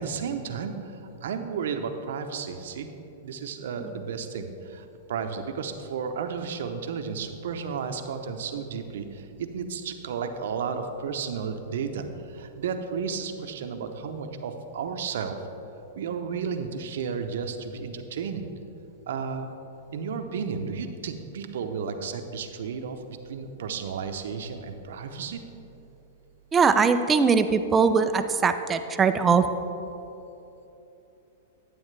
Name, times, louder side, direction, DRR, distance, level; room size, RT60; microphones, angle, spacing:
voice 1, 0.0-2.9 3.2-15.4 16.0-18.4 19.1-19.5 19.9-25.4, right 6 dB, 75° right, 7 dB, 0.7 m, -33 dB
voice 2, 26.5-29.5, right 5 dB, 20° right, 9 dB, 0.4 m, -21 dB
9.3 x 8.6 x 3.3 m, 3.0 s
hypercardioid pair, 125°, 0 cm